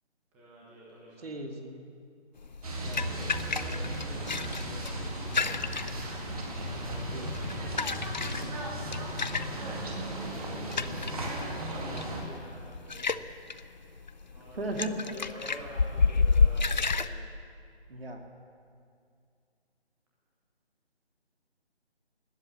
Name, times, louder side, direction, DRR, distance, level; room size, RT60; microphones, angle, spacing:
voice 1, 0.3-1.3 3.0-8.2 9.3-13.4 13.6-13.9 14.3-17.3, equal, 5° right, -6 dB, 1.0 m, -49 dB
voice 2, 1.2-1.8 2.8-3.2 7.1-7.3 14.6-15.1 17.9-18.2, right 2 dB, 60° right, 3 dB, 2.2 m, -36 dB
sound 1, 2.4-17.1, left 4 dB, 45° left, 0.5 m, -31 dB
sound 2, 2.6-12.2, right 1 dB, 35° right, 2.3 m, -36 dB
19.0 x 7.8 x 9.6 m, 2.3 s
figure-of-eight pair, 160°, 33 cm